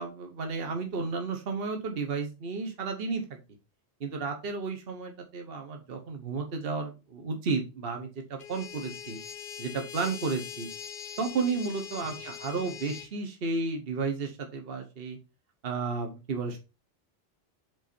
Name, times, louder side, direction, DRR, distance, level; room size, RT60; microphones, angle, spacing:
voice 1, 0.0-3.4 4.0-9.2 9.6-10.7 11.2-15.2 15.6-16.6, right 4 dB, 60° right, 4 dB, 1.3 m, -32 dB
sound 1, 8.4-13.1, left 8 dB, 60° left, 0.8 m, -42 dB
7.9 x 4.0 x 4.3 m, 0.29 s
omnidirectional pair, 1.1 m